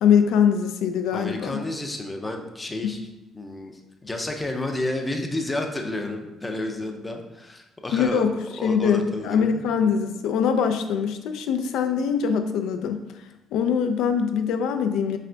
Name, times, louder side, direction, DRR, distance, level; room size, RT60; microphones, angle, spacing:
voice 1, 0.0-1.6 2.8-3.0 7.9-8.3 8.6-13.0 13.5-15.2, left 7 dB, 80° left, 7 dB, 0.3 m, -22 dB
voice 2, 1.1-3.0 3.3-8.2 8.6-9.6, left 1 dB, 10° left, 3 dB, 0.5 m, -31 dB
3.3 x 3.3 x 3.8 m, 0.96 s
cardioid pair, 135°, 0 cm